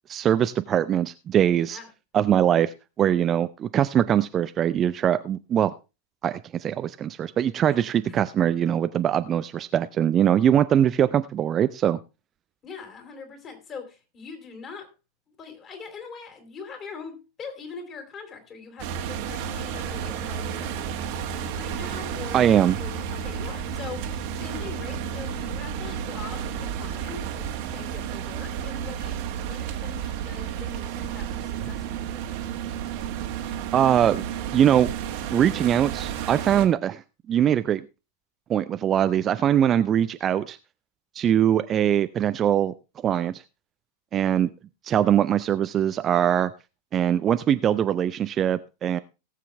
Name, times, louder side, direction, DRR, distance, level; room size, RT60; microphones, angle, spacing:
voice 1, 0.1-1.8 2.1-5.7 6.2-12.0 22.3-22.8 33.7-34.2 34.5-34.9 35.3-37.0 37.3-37.8 38.5-40.6 41.1-42.7 43.0-43.4 44.1-44.5 44.8-46.5 46.9-49.0, right 10 dB, 25° right, 12 dB, 0.5 m, -22 dB
voice 2, 7.7-8.1 12.6-14.9 15.3-32.4, left 5 dB, 30° left, 5 dB, 3.7 m, -42 dB
sound 1, 18.8-36.7, right 8 dB, 45° right, 1.5 m, -32 dB
18.5 x 7.6 x 3.4 m, 0.29 s
figure-of-eight pair, 90°, 0 cm